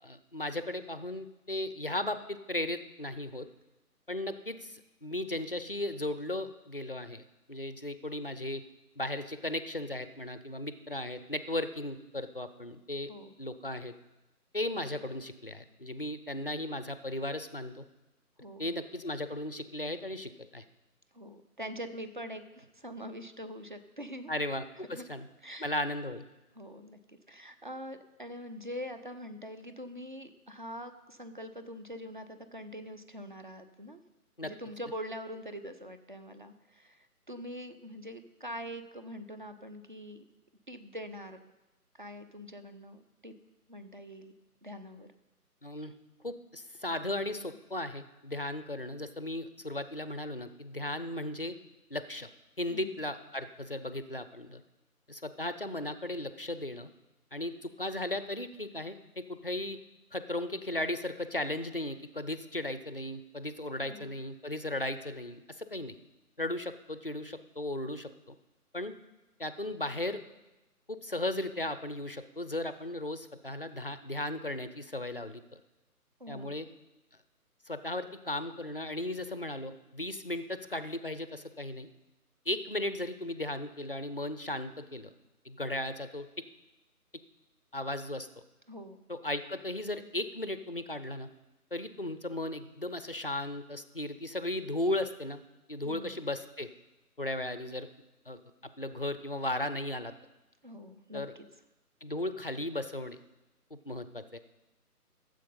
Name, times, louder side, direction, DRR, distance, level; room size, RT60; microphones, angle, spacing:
voice 1, 0.0-3.5 4.1-7.2 7.5-8.6 9.0-13.1 13.4-14.0 14.5-17.8 18.6-20.6 24.3-25.3 25.6-26.3 34.4-34.5 45.6-45.9 46.2-51.6 51.9-52.3 52.6-54.6 55.1-56.9 57.3-59.8 60.1-66.0 66.4-68.3 68.7-68.9 69.4-70.2 70.9-75.6 76.3-76.7 77.7-81.9 82.5-85.1 85.4-86.3 87.7-88.3 89.1-91.3 91.7-95.4 95.7-96.7 97.2-97.9 98.3-98.4 98.8-100.1 101.1-101.3 102.0-103.2 103.9-104.4, left 1 dB, 40° left, 11 dB, 0.5 m, -36 dB
voice 2, 18.4-18.7 21.1-24.3 24.9-25.0 25.4-25.7 26.6-34.0 34.4-40.2 40.7-41.4 42.0-43.3 43.7-44.3 44.6-45.1 52.7-52.9 63.8-64.1 76.2-76.5 88.7-89.0 95.8-96.2 100.6-101.2, equal, 35° right, 9 dB, 0.6 m, -44 dB
14.0 x 7.6 x 5.4 m, 1.0 s
figure-of-eight pair, 150°, 46 cm